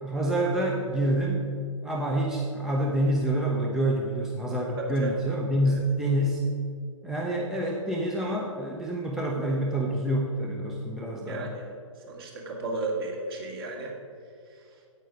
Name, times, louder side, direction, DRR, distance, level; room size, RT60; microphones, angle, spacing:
voice 1, 0.0-1.5 1.8-6.4 7.0-11.5, right 1 dB, ahead, -2 dB, 0.6 m, -27 dB
voice 2, 4.8-5.1 5.7-5.8 11.3-11.7 12.1-13.9, right 3 dB, 45° right, 0 dB, 2.1 m, -34 dB
8.9 x 8.2 x 5.2 m, 2.3 s
figure-of-eight pair, 130°, 17 cm